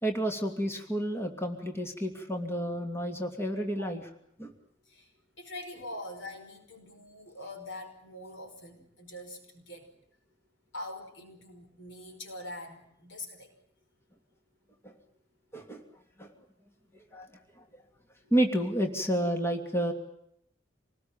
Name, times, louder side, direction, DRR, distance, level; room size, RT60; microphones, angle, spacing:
voice 1, 0.0-4.0 4.4-4.5 14.8-14.9 15.5-15.8 16.2-16.3 17.1-17.3 18.3-19.9, right 1 dB, 15° left, 4 dB, 2.8 m, -30 dB
voice 2, 3.8-4.1 4.9-5.1 5.4-9.9 10.7-13.5, left 1 dB, 75° left, 5 dB, 5.1 m, -44 dB
27.0 x 20.0 x 8.8 m, 0.74 s
head